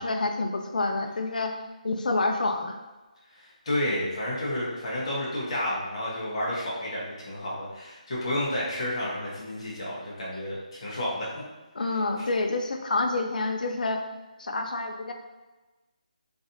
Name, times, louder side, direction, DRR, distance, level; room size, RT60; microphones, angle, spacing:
voice 1, 0.0-1.5 1.8-2.8 11.7-14.0 14.4-15.1, left 2 dB, 75° left, 4 dB, 0.4 m, -28 dB
voice 2, 3.3-11.3 12.2-12.3, left 1 dB, 40° left, -6 dB, 1.1 m, -31 dB
3.2 x 2.6 x 2.7 m, 1.2 s
hypercardioid pair, 170°, 4 cm